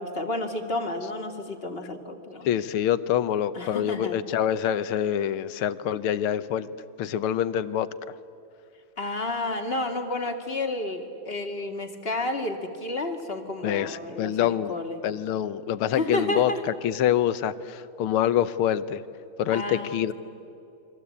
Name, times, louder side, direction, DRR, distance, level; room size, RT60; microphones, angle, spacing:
voice 1, 0.0-2.5 3.5-4.2 9.0-15.0 15.9-16.6 19.5-20.1, left 2 dB, 30° left, 5 dB, 2.1 m, -31 dB
voice 2, 2.5-6.7 7.0-7.9 13.6-14.7 15.0-16.5 16.8-19.0 19.4-20.1, left 10 dB, 85° left, 14 dB, 1.7 m, -25 dB
29.5 x 23.5 x 8.5 m, 2.7 s
omnidirectional pair, 2.4 m